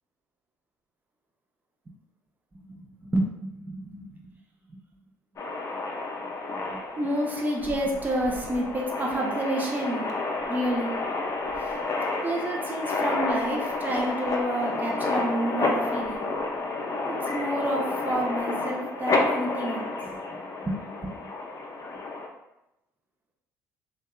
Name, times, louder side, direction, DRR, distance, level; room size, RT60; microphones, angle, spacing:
voice 1, 2.5-4.2 6.5-10.1 10.5-10.9 11.5-11.7 12.2-16.3 17.1-19.9 20.3-21.3, right 1 dB, 20° right, -1 dB, 0.5 m, -30 dB
sound 1, 5.4-22.3, left 3 dB, 40° left, 0.5 m, -30 dB
2.6 x 2.2 x 2.3 m, 0.90 s
hypercardioid pair, 60°, 8 cm